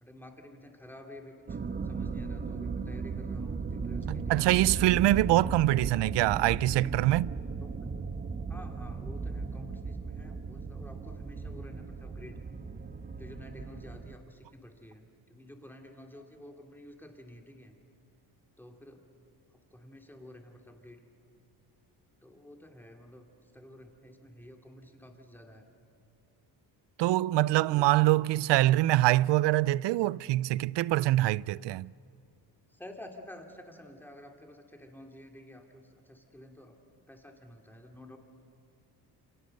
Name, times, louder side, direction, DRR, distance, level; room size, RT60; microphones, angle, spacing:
voice 1, 0.0-1.6 1.8-4.5 7.6-7.8 8.5-12.4 13.1-17.8 18.6-19.1 19.7-21.0 22.2-25.7 27.6-27.9 32.7-36.8 37.1-38.2, left 1 dB, 5° left, 2.6 m, -50 dB
sound 1, 1.5-14.2, right 4 dB, 25° right, 1.1 m, -36 dB
voice 2, 4.1-7.3 27.0-31.9, right 16 dB, 90° right, 0.5 m, -24 dB
28.5 x 27.5 x 6.6 m
cardioid pair, 140°, 41 cm